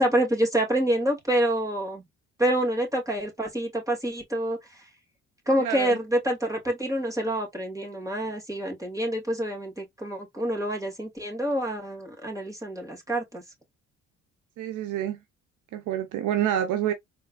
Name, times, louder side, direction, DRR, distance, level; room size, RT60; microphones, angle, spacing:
voice 1, 0.0-2.0 2.4-4.8 5.5-13.4, right 1 dB, 10° right, 2.3 m, -27 dB
voice 2, 5.6-6.0 14.6-15.2 15.7-16.9, right 11 dB, 80° right, 0.8 m, -27 dB
4.5 x 3.3 x 2.3 m
cardioid pair, 90°, 30 cm